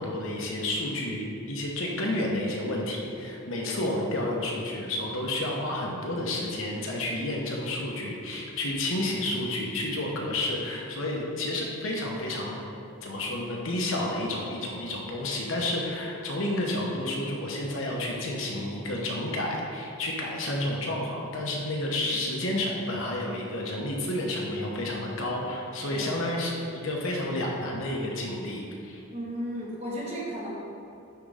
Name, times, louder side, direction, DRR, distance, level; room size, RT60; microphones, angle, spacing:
voice 1, 0.0-12.6 13.0-29.0, left 1 dB, 70° left, -1 dB, 0.9 m, -30 dB
voice 2, 29.1-30.5, equal, 30° right, -6 dB, 1.3 m, -35 dB
9.2 x 3.7 x 3.4 m, 2.7 s
head